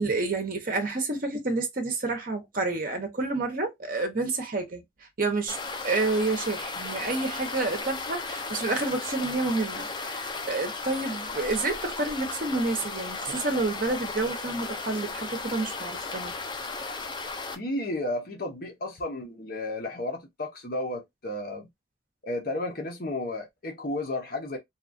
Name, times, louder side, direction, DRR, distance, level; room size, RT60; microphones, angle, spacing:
voice 1, 0.0-4.8 5.2-5.6 5.8-16.3, right 3 dB, 45° right, 0.8 m, -29 dB
sound 1, 5.5-17.6, left 3 dB, 25° left, 0.4 m, -35 dB
voice 2, 17.6-21.7 22.2-24.6, left 1 dB, 50° left, 0.8 m, -33 dB
2.8 x 2.3 x 2.5 m
head